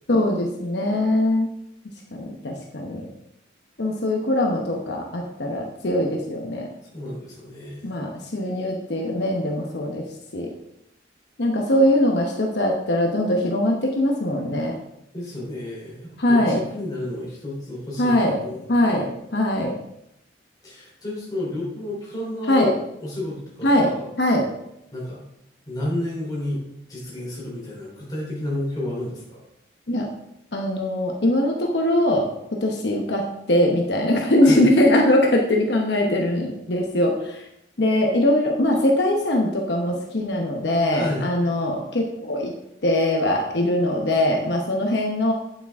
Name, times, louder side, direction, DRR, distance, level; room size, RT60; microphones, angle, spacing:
voice 1, 0.1-1.5 2.1-3.1 3.8-6.7 7.8-10.1 10.3-10.5 11.4-14.7 16.2-16.6 18.0-18.4 18.7-19.7 22.5-22.7 23.6-23.9 24.2-24.4 29.9-30.1 30.5-32.3 32.6-37.4 37.8-42.5 42.8-45.3, left 1 dB, 70° left, 0 dB, 1.0 m, -21 dB
voice 2, 6.9-7.9 15.1-19.1 20.6-24.1 24.9-25.2 25.7-26.6 26.9-29.4 34.4-34.7 40.9-41.3, left 1 dB, 20° left, -5 dB, 3.5 m, -31 dB
8.8 x 7.7 x 3.6 m, 0.82 s
head